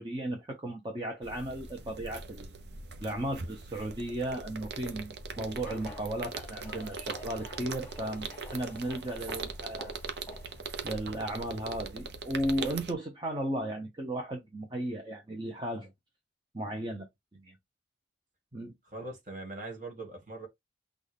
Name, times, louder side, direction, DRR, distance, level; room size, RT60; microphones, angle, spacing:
voice 1, 0.0-2.5 3.0-10.0 10.8-15.9 16.5-17.1 17.3-17.5 18.5-18.8, right 1 dB, 25° right, 0.9 m, -35 dB
sound 1, 1.2-12.9, right 4 dB, 65° right, 0.8 m, -41 dB
sound 2, 5.3-10.6, left 1 dB, 10° left, 1.6 m, -50 dB
voice 2, 18.9-20.5, right 2 dB, 45° right, 2.0 m, -42 dB
6.1 x 2.5 x 3.5 m
head